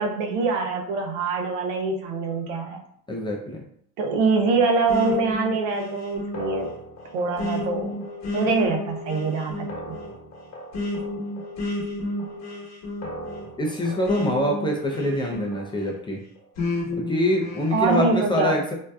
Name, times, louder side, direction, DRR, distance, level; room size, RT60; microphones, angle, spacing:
voice 1, 0.0-2.8 4.0-6.7 7.1-8.0 8.3-10.0 17.7-18.6, right 4 dB, 80° right, 3 dB, 0.7 m, -24 dB
voice 2, 3.1-3.6 13.6-16.2 16.9-18.7, left 1 dB, 15° left, -2 dB, 0.4 m, -25 dB
sound 1, 4.9-15.9 16.6-18.1, left 2 dB, 40° left, 1.1 m, -32 dB
2.7 x 2.1 x 2.2 m, 0.68 s
hypercardioid pair, 90°, 39 cm